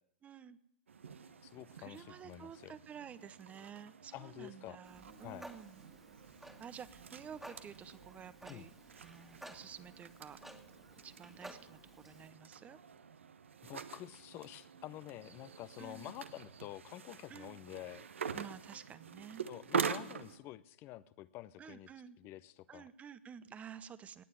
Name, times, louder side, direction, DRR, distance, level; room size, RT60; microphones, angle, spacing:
voice 1, 0.2-0.6 1.8-5.8 6.6-10.4 11.0-11.8 12.0-12.8 15.8-16.1 17.3-17.6 18.3-19.5 19.8-20.2 21.6-22.2 22.7-24.2, right 7 dB, 20° right, 16 dB, 0.8 m, -51 dB
sound 1, 0.9-20.4, right 6 dB, 85° right, 1.2 m, -45 dB
voice 2, 1.4-2.7 4.1-4.8 5.2-5.5 8.5-8.7 13.6-18.1 19.5-21.9 22.2-22.9, left 15 dB, 35° left, 16 dB, 0.7 m, -49 dB
Clock, 4.8-12.3, right 1 dB, 5° right, 1.8 m, -55 dB
19.0 x 7.6 x 9.9 m, 0.76 s
hypercardioid pair, 120°, 7 cm